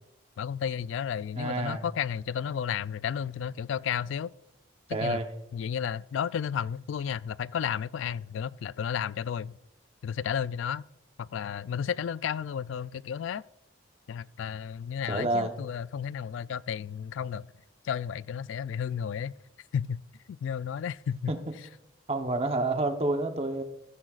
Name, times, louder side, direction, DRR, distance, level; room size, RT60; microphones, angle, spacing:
voice 1, 0.4-4.3 4.9-5.2 5.5-9.6 10.0-10.8 11.2-13.4 14.1-17.5 17.8-19.3 19.7-20.0 20.3-21.3, left 8 dB, 80° left, 0.3 m, -32 dB
voice 2, 1.3-1.8 4.9-5.3 15.1-15.5 21.3-21.4 22.1-23.6, right 2 dB, 30° right, 0.9 m, -28 dB
15.0 x 14.5 x 2.4 m
head